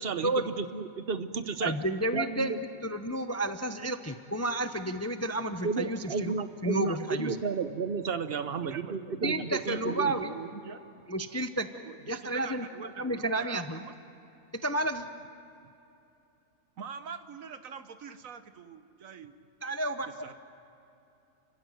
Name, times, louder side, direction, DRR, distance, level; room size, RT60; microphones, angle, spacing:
voice 1, 0.0-1.7 2.1-2.6 5.6-10.2, right 5 dB, 45° right, 11 dB, 1.0 m, -32 dB
voice 2, 1.6-2.6 2.8-7.4 9.2-10.4 11.1-11.7 12.1-12.6 13.0-13.8 14.6-15.1 19.6-20.1, right 1 dB, 15° left, 8 dB, 0.6 m, -31 dB
voice 3, 8.7-10.9 11.8-13.9 16.8-19.3 20.1-20.3, right 6 dB, 70° right, 10 dB, 1.5 m, -44 dB
29.5 x 16.0 x 9.2 m, 2.8 s
omnidirectional pair, 1.5 m